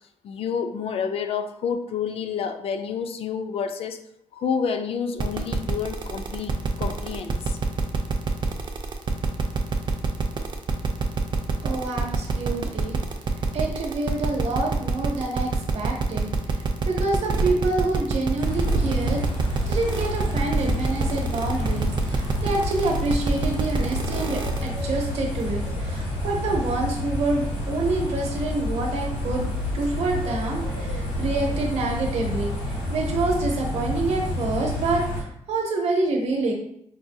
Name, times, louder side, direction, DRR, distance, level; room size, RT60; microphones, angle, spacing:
voice 1, 0.2-4.0 4.3-6.5 6.8-7.6, left 6 dB, 55° left, 7 dB, 0.3 m, -29 dB
sound 1, 5.2-24.7, right 4 dB, 40° right, 0.4 m, -26 dB
voice 2, 11.5-13.0 13.5-29.4 29.7-36.5, right 2 dB, 60° right, 1 dB, 0.8 m, -27 dB
sound 2, 18.4-35.2, left 1 dB, 80° left, 1.4 m, -29 dB
4.7 x 2.6 x 2.3 m, 0.73 s
cardioid pair, 135°, 12 cm